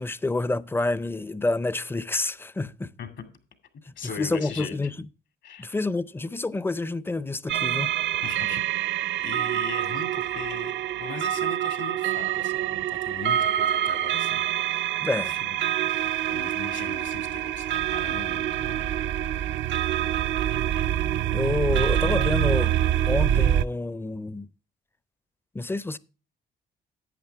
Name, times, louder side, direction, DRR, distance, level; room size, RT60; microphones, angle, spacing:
voice 1, 0.0-2.9 4.0-5.0 5.6-7.9 15.0-15.4 21.3-22.8 23.1-24.5 25.5-26.0, left 2 dB, 10° left, 0.5 m, -28 dB
voice 2, 4.0-4.7 5.4-5.8 8.2-8.6 9.2-10.7 11.0-14.9 15.2-15.6 16.3-19.0, left 6 dB, 70° left, 2.2 m, -39 dB
sound 1, 7.5-23.7, right 11 dB, 70° right, 0.5 m, -26 dB
11.0 x 8.6 x 3.4 m
cardioid pair, 90°, 20 cm